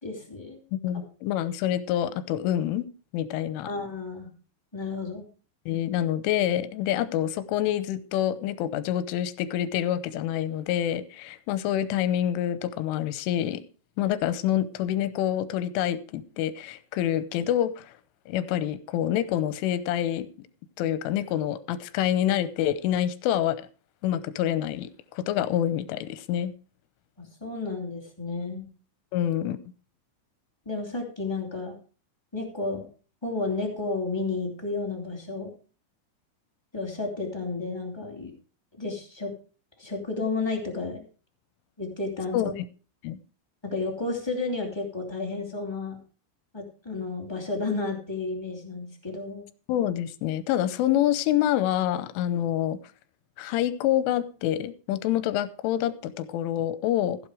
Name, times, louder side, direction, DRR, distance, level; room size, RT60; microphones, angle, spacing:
voice 1, 0.0-0.6 3.6-4.3 4.7-5.3 27.2-28.7 30.6-31.8 32.3-32.9 33.2-35.5 36.7-38.3 38.8-39.3 39.8-41.0 41.8-42.5 43.6-46.0 46.5-49.4, left 3 dB, 15° left, -2 dB, 0.8 m, -32 dB
voice 2, 0.7-2.9 3.1-3.7 5.7-13.6 14.0-17.9 18.3-20.3 20.8-23.7 24.0-26.5 29.1-29.6 42.3-42.5 43.0-43.2 49.7-52.8 53.4-57.2, left 11 dB, 80° left, 15 dB, 3.3 m, -27 dB
15.5 x 8.0 x 4.8 m, 0.36 s
omnidirectional pair, 5.7 m